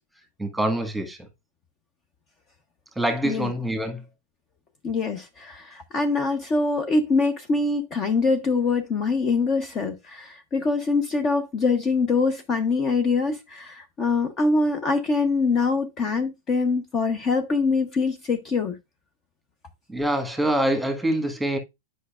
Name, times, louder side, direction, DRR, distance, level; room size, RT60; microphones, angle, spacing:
voice 1, 0.4-1.3 2.9-4.0 19.9-21.6, right 1 dB, 5° right, 1.5 m, -25 dB
voice 2, 4.8-18.8, left 4 dB, 30° left, 0.9 m, -24 dB
8.4 x 5.1 x 2.4 m
hypercardioid pair, 115°, 0 cm